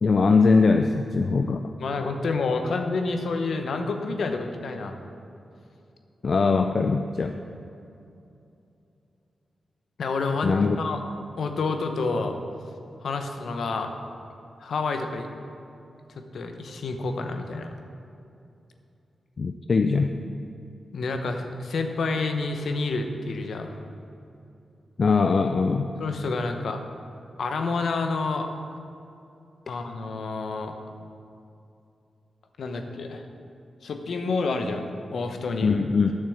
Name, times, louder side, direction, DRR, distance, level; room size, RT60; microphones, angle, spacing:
voice 1, 0.0-1.7 6.2-7.3 10.4-10.8 19.4-20.1 25.0-25.9 35.6-36.1, left 4 dB, 60° left, 6 dB, 0.4 m, -21 dB
voice 2, 1.8-5.0 10.0-11.0 11.4-12.4 13.0-13.9 14.6-15.3 16.1-17.7 20.9-23.8 26.0-26.8 27.4-28.5 29.7-30.7 32.6-33.2 33.8-35.7, left 3 dB, 75° left, 5 dB, 0.9 m, -28 dB
8.9 x 6.8 x 7.0 m, 2.7 s
supercardioid pair, 45°, 0 cm